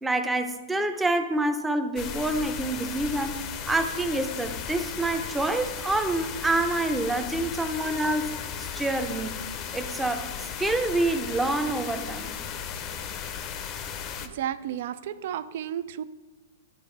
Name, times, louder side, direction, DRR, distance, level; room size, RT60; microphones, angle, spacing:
voice 1, 0.0-3.4 3.7-9.4 9.7-10.3 10.6-12.3, right 2 dB, 10° right, 8 dB, 0.6 m, -27 dB
sound 1, 2.0-14.3, left 8 dB, 35° left, 0.6 m, -36 dB
voice 2, 14.2-16.0, right 10 dB, 60° right, 15 dB, 0.3 m, -32 dB
11.0 x 4.2 x 3.2 m, 1.2 s
hypercardioid pair, 130°, 0 cm